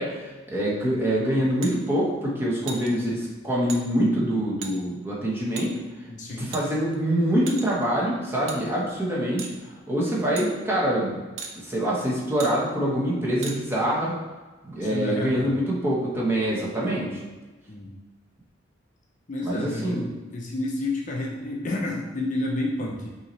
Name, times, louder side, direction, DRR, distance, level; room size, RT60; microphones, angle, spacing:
voice 1, 0.0-5.7 6.4-9.5 9.9-11.2 11.5-14.2 14.6-17.2 19.4-20.1, right 1 dB, 10° right, -5 dB, 1.0 m, -25 dB
sound 1, 1.6-1.8 2.7-2.9 3.7-3.8 4.6-4.7 5.6-5.7 6.5-7.0 7.5-7.8 8.5-8.6 9.4-9.6 10.4-10.5 11.4-11.5 12.4-12.5 13.4-13.6, right 5 dB, 85° right, 0.6 m, -36 dB
voice 2, 6.1-6.5 14.8-15.5 17.7-17.9 19.3-20.0 20.3-23.1, left 2 dB, 40° left, -1 dB, 0.5 m, -30 dB
5.6 x 2.8 x 3.1 m, 1.2 s
head